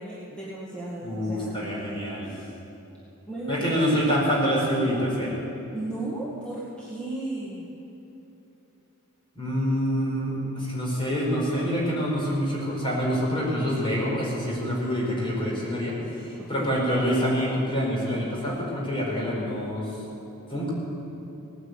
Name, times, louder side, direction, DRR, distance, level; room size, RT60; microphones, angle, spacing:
voice 1, 0.0-2.5 3.3-4.1 5.7-7.7 16.4-16.8, right 1 dB, 5° left, -8 dB, 2.0 m, -35 dB
voice 2, 1.0-2.3 3.5-5.3 9.3-20.0 20.5-20.7, equal, 25° left, -4 dB, 4.4 m, -26 dB
18.0 x 9.6 x 8.2 m, 3.0 s
head